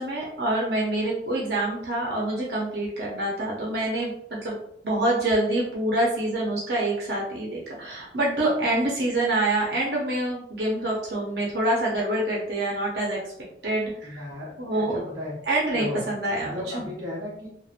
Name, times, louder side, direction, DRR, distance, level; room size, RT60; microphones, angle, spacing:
voice 1, 0.0-4.5 4.8-13.2 13.6-14.2 14.6-15.0 15.5-16.8, right 1 dB, 65° right, -3 dB, 0.6 m, -26 dB
voice 2, 14.0-15.4 15.7-16.1 16.4-17.5, left 1 dB, 20° right, -7 dB, 1.1 m, -35 dB
3.0 x 2.1 x 2.4 m, 0.69 s
head